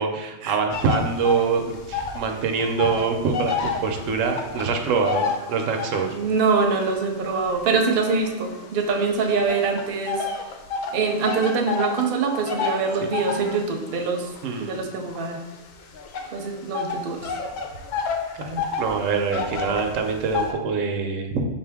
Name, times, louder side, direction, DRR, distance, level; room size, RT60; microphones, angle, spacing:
voice 1, 0.0-6.2 14.4-14.8 18.3-21.4, right 5 dB, 85° right, 4 dB, 1.0 m, -25 dB
sound 1, 0.7-2.3 2.5-6.2 6.8-8.9 9.5-20.5, left 5 dB, 90° left, 1.0 m, -30 dB
voice 2, 6.1-10.2 10.9-14.3 14.6-15.4 16.3-17.3, right 4 dB, 55° right, 3 dB, 0.6 m, -24 dB
5.0 x 2.6 x 3.4 m, 1.0 s
omnidirectional pair, 1.3 m